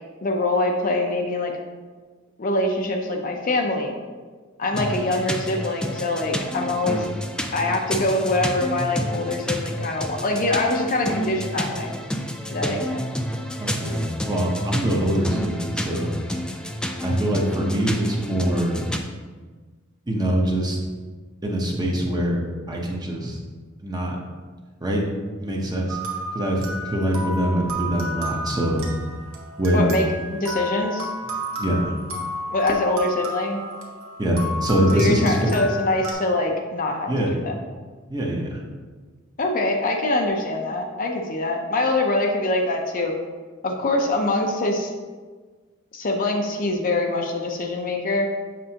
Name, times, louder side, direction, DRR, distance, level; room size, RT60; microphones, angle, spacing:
voice 1, 0.2-1.5 2.4-3.9 4.6-7.1 7.5-11.9 12.5-13.0 29.7-31.1 32.5-33.6 34.9-37.5 39.4-43.1 43.6-44.9 45.9-48.3, left 2 dB, 40° left, 2 dB, 0.7 m, -24 dB
sound 1, 4.7-19.0, equal, 5° left, 0.4 m, -29 dB
voice 2, 13.6-16.2 17.0-18.8 20.1-20.8 21.4-22.4 22.7-23.4 23.8-24.2 24.8-25.0 25.4-26.0 26.3-28.9 29.6-29.9 31.6-31.9 34.2-35.5 37.1-37.3 38.1-38.6, equal, 20° right, -1 dB, 0.9 m, -23 dB
sound 2, 25.9-36.1, right 1 dB, 80° right, 1.2 m, -32 dB
7.6 x 5.4 x 2.9 m, 1.4 s
head